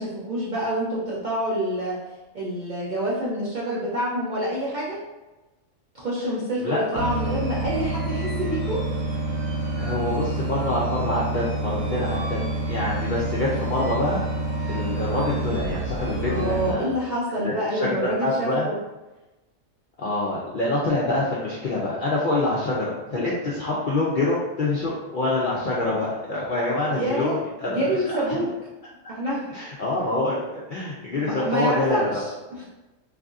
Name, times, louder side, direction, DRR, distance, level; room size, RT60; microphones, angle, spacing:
voice 1, 0.0-2.0 2.3-5.0 5.9-8.8 16.2-18.8 26.9-28.5 29.1-29.5 31.2-32.6, right 1 dB, 55° right, -7 dB, 0.5 m, -27 dB
sound 1, 6.9-16.7, right 2 dB, 75° right, 1.0 m, -28 dB
voice 2, 9.8-12.4 12.7-14.2 14.6-16.9 17.4-18.7 20.0-28.0 29.5-32.2, left 2 dB, 60° left, -6 dB, 0.5 m, -26 dB
3.3 x 2.5 x 2.4 m, 1.1 s
omnidirectional pair, 1.4 m